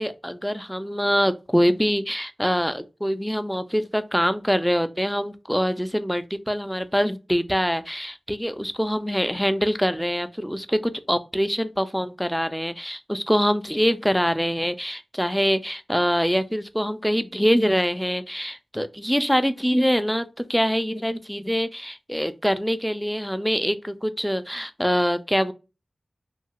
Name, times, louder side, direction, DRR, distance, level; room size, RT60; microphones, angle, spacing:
voice 1, 0.0-25.5, equal, ahead, 0.3 m, -24 dB
2.8 x 2.3 x 2.8 m
wide cardioid pair, 80°, 0 cm